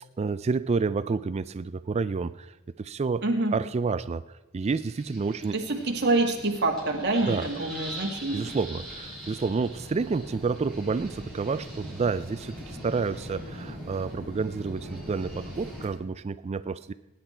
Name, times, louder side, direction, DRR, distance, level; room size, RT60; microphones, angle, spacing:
voice 1, 0.2-3.2 3.5-4.2 4.5-5.5 7.3-7.5 8.3-16.9, right 4 dB, 30° right, 15 dB, 0.3 m, -29 dB
voice 2, 3.2-3.5 5.5-8.5, right 2 dB, 50° right, 2 dB, 2.1 m, -26 dB
sound 1, 4.6-15.9, equal, ahead, 5.3 m, -41 dB
19.0 x 10.0 x 4.4 m, 1.0 s
head